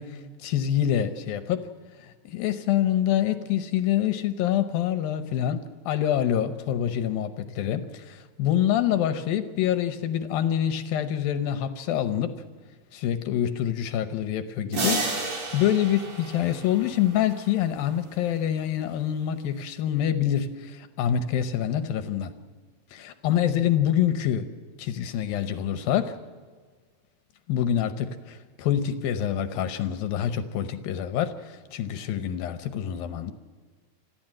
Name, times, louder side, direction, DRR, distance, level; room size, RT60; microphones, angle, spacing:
voice 1, 0.0-1.7 2.0-12.3 12.9-22.3 22.9-24.5 24.8-26.2 27.5-33.3, left 10 dB, 75° left, 10 dB, 2.4 m, -26 dB
sound 1, 14.7-17.5, right 2 dB, 45° right, 4.3 m, -31 dB
26.0 x 14.5 x 7.6 m, 1.5 s
omnidirectional pair, 4.7 m